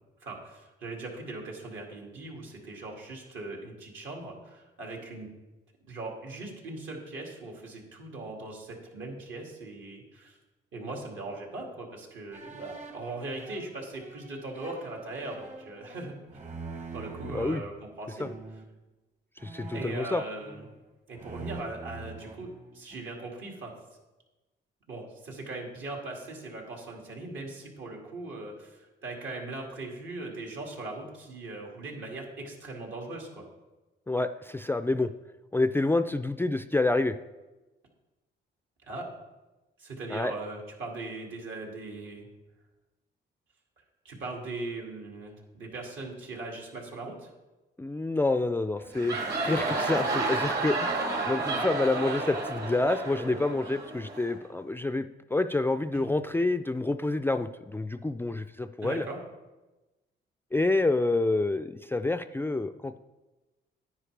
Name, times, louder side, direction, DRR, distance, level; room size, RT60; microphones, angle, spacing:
voice 1, 0.2-5.3 5.8-10.4 10.7-16.1 16.9-17.7 18.0-18.3 19.7-20.7 21.1-23.7 24.9-33.5 38.9-39.0 39.8-42.3 44.0-47.3 51.5-51.7 55.9-56.1 58.8-59.2, right 2 dB, 75° right, -1 dB, 2.4 m, -39 dB
sound 1, 12.3-17.6 18.2-18.7 19.4-20.8 21.1-23.1, right 3 dB, 35° right, 1.2 m, -44 dB
voice 2, 17.2-17.6 18.2-18.3 19.4-20.2 34.1-35.1 35.5-37.2 40.1-40.3 47.8-49.2 49.4-50.9 51.3-59.1 60.5-63.0, left 2 dB, 10° left, 10 dB, 0.3 m, -28 dB
sound 2, 48.8-54.4, right 3 dB, 55° right, 2.1 m, -31 dB
9.9 x 9.6 x 3.3 m, 1.1 s
cardioid pair, 90°, 20 cm